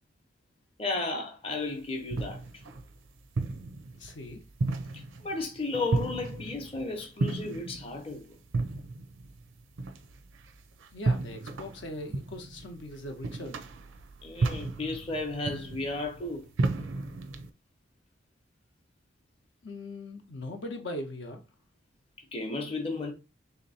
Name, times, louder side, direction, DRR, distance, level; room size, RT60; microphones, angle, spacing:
voice 1, 0.8-2.4 4.9-8.3 14.2-16.5 22.3-23.1, left 2 dB, 30° left, 0.7 m, -34 dB
sound 1, 1.6-17.5, right 3 dB, 85° right, 0.5 m, -34 dB
voice 2, 4.0-4.4 10.9-13.6 19.6-21.4, left 1 dB, 65° left, 0.7 m, -40 dB
3.3 x 2.9 x 4.1 m
head